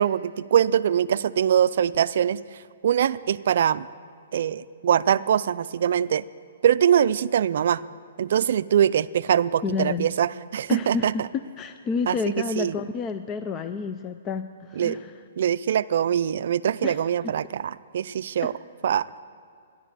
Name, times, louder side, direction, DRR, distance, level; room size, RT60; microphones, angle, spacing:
voice 1, 0.0-2.4 2.8-3.8 4.3-6.2 6.6-7.8 8.2-11.1 12.1-12.2 12.6-12.7 14.8-15.0 15.4-18.5 18.8-19.1, right 9 dB, 60° right, 15 dB, 0.4 m, -22 dB
voice 2, 9.6-10.1 10.7-15.2 16.8-17.0 18.4-18.5, left 5 dB, 20° left, 9 dB, 0.4 m, -30 dB
14.5 x 11.0 x 8.2 m, 2.4 s
hypercardioid pair, 155°, 0 cm